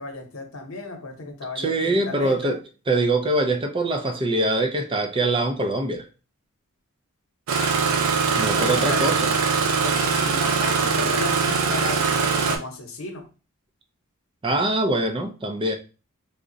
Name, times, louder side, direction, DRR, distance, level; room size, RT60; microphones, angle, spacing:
voice 1, 0.0-2.6 7.8-9.1 9.8-13.3, left 3 dB, 75° left, 0.9 m, -34 dB
voice 2, 1.6-2.6 2.9-6.1 8.4-9.3 14.4-15.8, right 2 dB, 25° right, 0.4 m, -23 dB
Engine starting, 7.5-12.6, right 5 dB, 80° right, 0.6 m, -22 dB
3.5 x 2.1 x 3.8 m
head